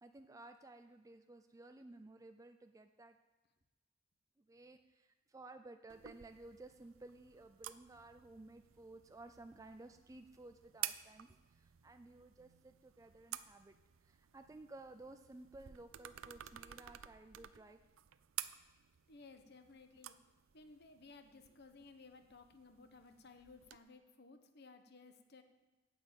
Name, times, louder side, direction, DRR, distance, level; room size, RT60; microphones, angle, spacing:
voice 1, 0.0-3.2 4.4-13.7 14.0-17.8, right 2 dB, 15° right, 7 dB, 0.4 m, -56 dB
sound 1, 5.9-23.8, right 13 dB, 75° right, 0.5 m, -52 dB
voice 2, 19.1-20.2 20.5-25.4, left 3 dB, 55° left, 7 dB, 1.0 m, -58 dB
9.6 x 7.2 x 8.7 m, 1.2 s
head